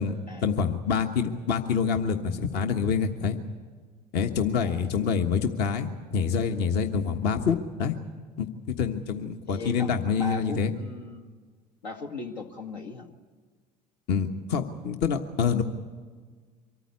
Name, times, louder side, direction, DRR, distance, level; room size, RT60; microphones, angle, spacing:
voice 1, 0.0-3.3 4.1-8.0 8.4-8.5 8.8-10.7 14.1-15.6, left 6 dB, 55° left, 6 dB, 1.4 m, -26 dB
voice 2, 4.6-4.9 9.4-11.3 11.8-13.1, left 3 dB, 85° left, 3 dB, 1.9 m, -38 dB
24.5 x 14.0 x 9.7 m, 1.6 s
hypercardioid pair, 70°, 21 cm